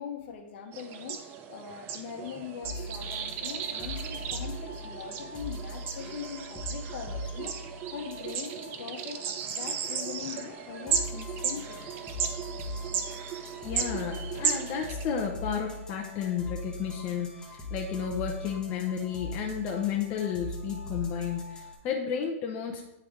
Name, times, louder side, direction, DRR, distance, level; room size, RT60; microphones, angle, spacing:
voice 1, 0.0-11.9, left 7 dB, 50° left, 3 dB, 1.0 m, -41 dB
sound 1, 0.7-15.0, right 7 dB, 30° right, 0.5 m, -35 dB
sound 2, 2.6-21.8, left 1 dB, 10° left, 1.1 m, -41 dB
voice 2, 13.6-22.8, left 8 dB, 30° left, -1 dB, 0.7 m, -32 dB
9.2 x 3.4 x 3.6 m, 0.86 s
hypercardioid pair, 145°, 7 cm